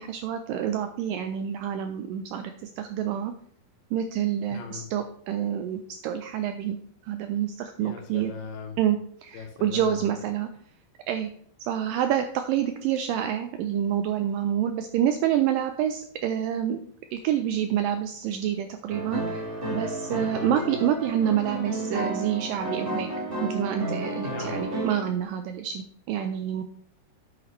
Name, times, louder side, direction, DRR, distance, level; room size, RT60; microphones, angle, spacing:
voice 1, 0.0-3.3 3.9-6.8 7.0-8.3 8.8-9.0 9.2-10.5 11.1-11.3 11.6-16.8 17.1-23.1 23.4-26.6, right 10 dB, 85° right, 8 dB, 1.9 m, -27 dB
voice 2, 4.5-4.9 7.8-8.8 9.3-10.0 20.2-20.5 24.3-24.6, left 6 dB, 75° left, 2 dB, 2.9 m, -39 dB
sound 1, 18.9-25.1, right 1 dB, 20° right, 1.4 m, -32 dB
9.1 x 8.7 x 3.1 m, 0.62 s
omnidirectional pair, 4.6 m